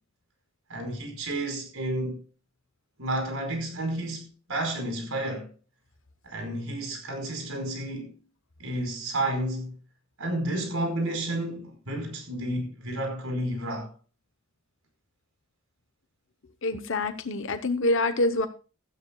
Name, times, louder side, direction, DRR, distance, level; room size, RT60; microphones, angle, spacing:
voice 1, 0.7-2.2 3.0-5.5 6.2-8.1 8.6-9.7 10.2-13.9, right 1 dB, 85° right, 4.9 m, -31 dB
voice 2, 16.6-18.5, left 2 dB, 65° left, 1.0 m, -26 dB
16.0 x 13.0 x 2.3 m
head